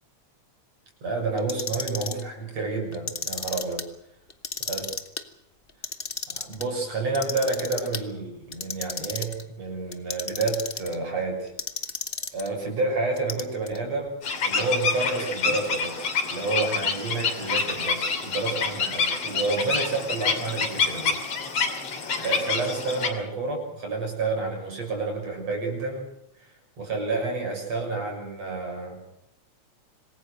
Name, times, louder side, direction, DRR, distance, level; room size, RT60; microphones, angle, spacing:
voice 1, 1.0-3.8 4.7-4.8 6.3-11.5 12.3-21.2 22.2-26.1 26.4-26.5 26.8-29.0, right 3 dB, 55° right, 1 dB, 7.7 m, -29 dB
Clock, 1.4-2.2 2.9-3.8 4.3-5.2 5.7-6.6 7.1-8.0 8.5-9.4 9.9-11.0 11.6-12.5 13.2-13.8, left 4 dB, 85° left, 0.5 m, -33 dB
sound 1, 14.2-23.1, left 5 dB, 55° left, 4.0 m, -27 dB
26.5 x 20.5 x 6.5 m, 0.77 s
omnidirectional pair, 3.5 m